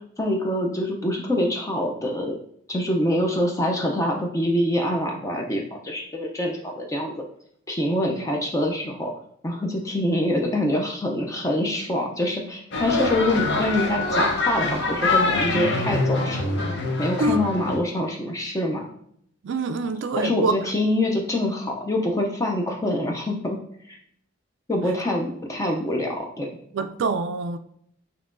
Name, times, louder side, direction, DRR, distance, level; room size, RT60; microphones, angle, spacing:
voice 1, 0.2-2.4 2.7-7.1 7.7-9.1 9.4-16.4 17.0-18.8 20.2-23.6 23.9-24.0 24.7-26.5, left 1 dB, 15° left, 0.4 m, -25 dB
sound 1, 12.7-17.8, left 3 dB, 55° left, 0.8 m, -24 dB
voice 2, 19.4-20.5 24.8-25.0 26.7-27.6, right 3 dB, 60° right, 0.3 m, -25 dB
5.3 x 2.9 x 2.5 m
head